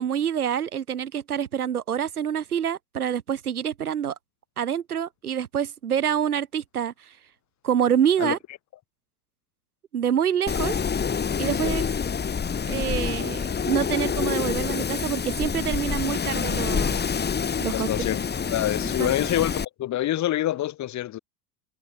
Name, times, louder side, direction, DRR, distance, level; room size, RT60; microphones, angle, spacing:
voice 1, 0.0-4.1 4.6-7.1 7.6-8.4 9.9-10.7 11.4-11.8 12.7-17.0 17.6-17.9 18.8-19.1, right 9 dB, 75° right, 1.5 m, -26 dB
Wind, 10.5-19.6, left 6 dB, 20° left, 4.5 m, -27 dB
voice 2, 17.7-18.2 18.5-21.2, left 13 dB, 40° left, 3.7 m, -26 dB
figure-of-eight pair, 75°, 45 cm